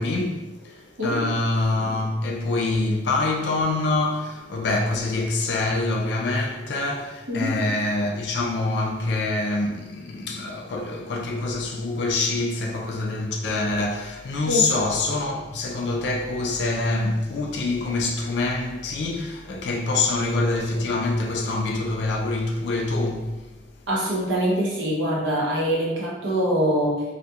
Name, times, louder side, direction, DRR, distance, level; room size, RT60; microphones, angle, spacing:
voice 1, 0.0-23.3, left 2 dB, 65° left, 0.3 m, -25 dB
voice 2, 23.9-27.0, equal, 85° right, 0.7 m, -24 dB
2.3 x 2.0 x 2.7 m
head